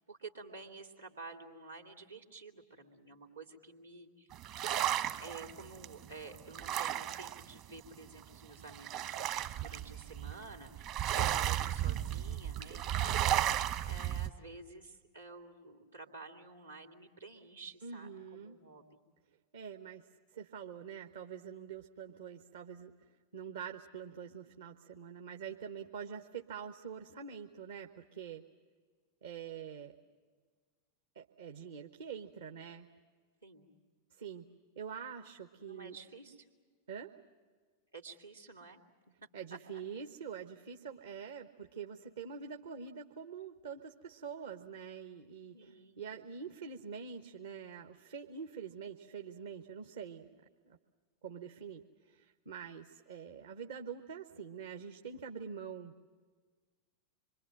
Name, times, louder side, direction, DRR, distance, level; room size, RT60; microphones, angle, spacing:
voice 1, 0.1-4.3 5.2-13.5 13.8-19.0 33.4-33.7 35.6-36.5 37.9-38.8 39.5-39.6 45.5-46.1, right 3 dB, 80° right, 3 dB, 2.8 m, -51 dB
sound 1, 4.3-7.5 7.8-7.9 8.2-8.3 8.6-14.3, right 12 dB, 40° right, 1.2 m, -34 dB
voice 2, 17.8-18.6 19.5-20.1 20.3-22.9 23.3-28.4 29.2-29.9 31.1-32.9 34.2-34.5 34.8-36.0 36.9-37.1 39.3-45.6 46.0-50.3 50.6-50.8 51.2-55.9, right 7 dB, 65° right, 5 dB, 1.1 m, -45 dB
26.5 x 24.0 x 7.6 m, 1.5 s
figure-of-eight pair, 90°, 0 cm